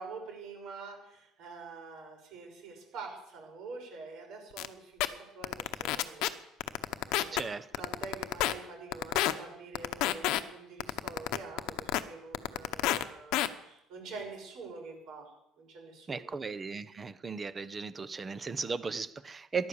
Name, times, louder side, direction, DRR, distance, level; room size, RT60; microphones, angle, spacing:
voice 1, 0.0-6.3 7.1-7.5 7.8-16.3, right 4 dB, 65° right, 1 dB, 6.2 m, -46 dB
sound 1, 4.6-4.7 5.0-5.1 5.4-6.3 6.6-7.4 7.7-8.5 8.9-9.3 9.8-10.4 10.8-12.0 12.3-13.0 13.3-13.5, left 15 dB, 70° left, 1.0 m, -28 dB
voice 2, 7.3-7.7 16.1-19.7, right 4 dB, 25° right, 15 dB, 0.8 m, -36 dB
14.5 x 11.5 x 7.1 m, 0.83 s
cardioid pair, 125°, 0 cm